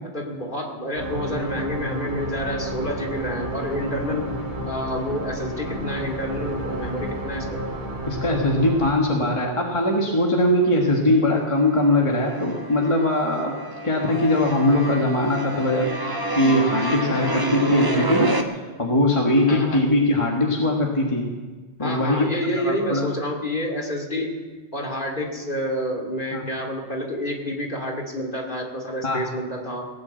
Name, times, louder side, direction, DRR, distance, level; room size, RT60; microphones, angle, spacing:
voice 1, 0.1-4.3 4.6-7.6 19.5-19.8 21.8-24.4 24.7-29.9, equal, 45° left, 0 dB, 2.6 m, -28 dB
sound 1, 1.0-8.9, right 1 dB, 90° right, 3.3 m, -31 dB
voice 2, 8.1-13.5 13.8-18.3 18.8-21.3 21.8-22.3 22.6-23.1 26.3-26.5 29.0-29.3, left 1 dB, 30° left, -1 dB, 1.5 m, -21 dB
sound 2, 10.2-11.0 11.3-18.4, right 2 dB, 20° right, 1.0 m, -29 dB
18.0 x 9.5 x 7.8 m, 1.4 s
omnidirectional pair, 1.1 m